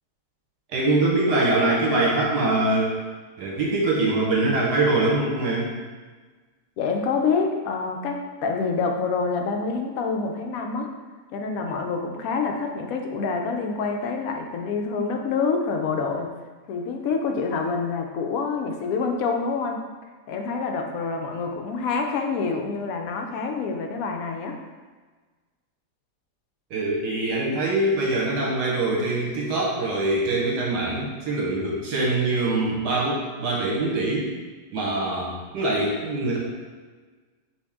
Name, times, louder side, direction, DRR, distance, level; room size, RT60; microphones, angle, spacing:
voice 1, 0.7-2.9 3.4-5.7 26.7-34.2 34.7-36.4, right 2 dB, 75° right, -4 dB, 1.6 m, -23 dB
voice 2, 6.8-10.9 11.3-16.3 16.7-19.8 20.3-24.6, left 4 dB, 70° left, 3 dB, 0.9 m, -27 dB
5.3 x 2.6 x 3.5 m, 1.4 s
omnidirectional pair, 1.8 m